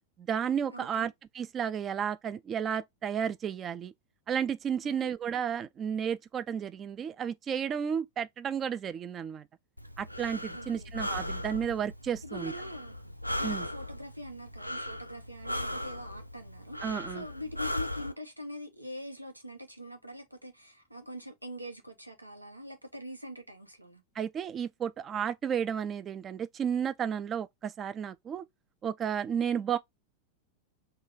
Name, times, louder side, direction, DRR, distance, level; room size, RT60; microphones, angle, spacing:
voice 1, 0.2-3.9 4.3-9.5 10.0-12.5 13.4-13.7 16.8-17.3 24.2-28.4 28.8-29.8, right 8 dB, 25° right, 0.4 m, -32 dB
voice 2, 0.7-1.1 4.8-5.1 10.5-10.9 12.2-24.0, equal, 85° right, 1.0 m, -43 dB
Breathing, 9.8-18.1, left 1 dB, 90° left, 0.4 m, -38 dB
3.8 x 2.4 x 4.2 m
figure-of-eight pair, 90°, 0 cm